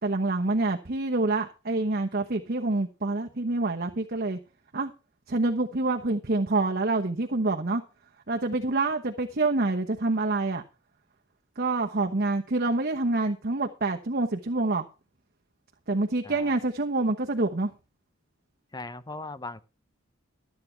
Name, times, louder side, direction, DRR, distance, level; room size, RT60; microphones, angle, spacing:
voice 1, 0.0-4.4 4.7-4.9 5.3-7.8 8.3-10.6 11.6-14.8 15.9-17.7, right 2 dB, 50° right, 1.0 m, -27 dB
voice 2, 18.7-19.6, left 2 dB, 20° left, 0.7 m, -38 dB
13.0 x 8.5 x 4.5 m
head